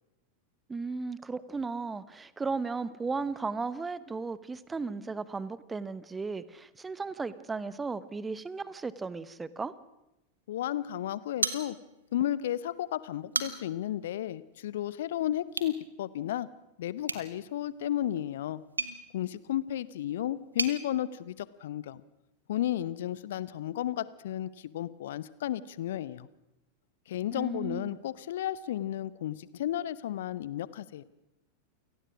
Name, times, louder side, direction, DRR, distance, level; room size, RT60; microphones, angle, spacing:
voice 1, 0.7-9.7 27.3-28.0, right 4 dB, 15° right, 17 dB, 1.1 m, -35 dB
voice 2, 10.5-11.8 12.1-16.5 16.8-18.6 19.1-22.0 22.5-26.3 27.1-31.0, left 12 dB, 55° left, 18 dB, 0.9 m, -33 dB
sound 1, 11.4-12.2 12.5-12.6 13.1-13.9 15.5-15.8 17.0-20.8, right 3 dB, 80° right, 1.6 m, -36 dB
28.5 x 18.0 x 6.2 m, 0.92 s
figure-of-eight pair, 90°, 0 cm